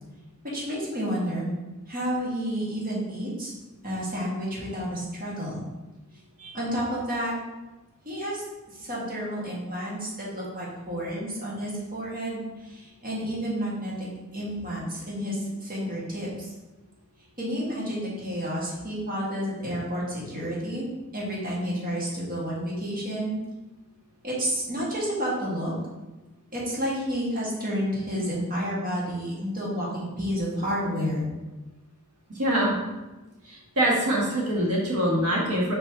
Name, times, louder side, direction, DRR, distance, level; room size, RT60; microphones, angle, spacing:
voice 1, 0.5-1.5 1.9-3.5 3.8-5.6 6.5-7.3 8.1-8.4 8.7-16.5 17.4-20.8 21.1-23.4 24.2-25.7 26.5-31.2, equal, 40° right, -6 dB, 1.9 m, -30 dB
voice 2, 32.3-32.8 33.4-35.7, right 1 dB, 85° right, -3 dB, 1.3 m, -24 dB
5.4 x 4.8 x 3.7 m, 1.1 s
head